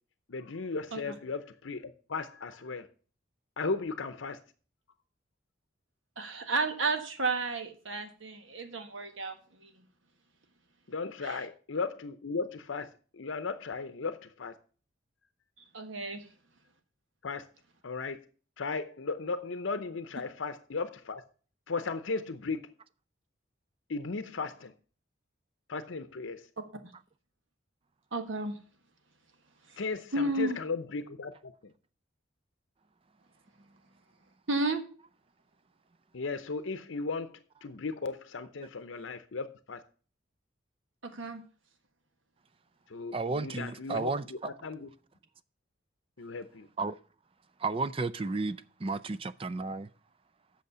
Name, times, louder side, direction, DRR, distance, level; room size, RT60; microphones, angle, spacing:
voice 1, 0.3-2.9 3.6-4.4 10.9-14.5 17.2-17.5 17.8-18.2 18.6-21.2 21.7-22.7 23.9-24.7 25.7-26.5 29.8-31.7 36.1-39.8 42.9-44.9 46.2-46.7, left 4 dB, 75° left, 0.7 m, -36 dB
voice 2, 6.2-9.7 11.2-11.4 15.7-16.3 28.1-28.6 29.7-29.8 30.1-30.6 34.5-34.8 41.1-41.4, right 3 dB, 75° right, 1.5 m, -32 dB
voice 3, 43.1-44.5 46.8-47.0 47.6-49.9, right 3 dB, 30° right, 0.4 m, -33 dB
8.3 x 6.4 x 6.7 m
head